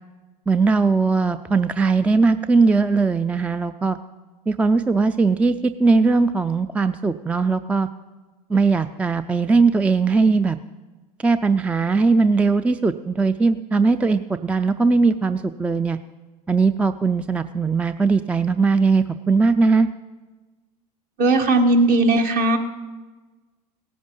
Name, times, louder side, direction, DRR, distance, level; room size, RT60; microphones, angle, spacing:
voice 1, 0.5-4.0 4.5-7.9 8.5-10.6 11.2-16.0 16.5-19.9, right 4 dB, 5° right, 12 dB, 0.3 m, -19 dB
voice 2, 21.2-22.6, right 2 dB, 45° right, 5 dB, 1.6 m, -17 dB
17.0 x 9.4 x 5.4 m, 1.3 s
hypercardioid pair, 85°, 20 cm